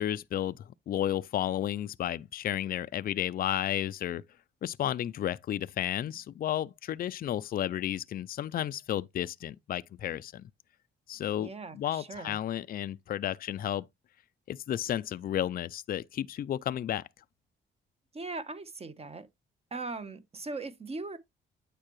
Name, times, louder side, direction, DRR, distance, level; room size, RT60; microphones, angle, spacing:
voice 1, 0.0-4.2 4.6-10.5 11.1-13.9 14.5-17.1, left 11 dB, 45° left, 0.4 m, -32 dB
voice 2, 11.4-12.4 18.1-19.3 19.7-21.2, right 3 dB, 30° right, 1.1 m, -39 dB
8.8 x 4.6 x 3.0 m
cardioid pair, 90°, 20 cm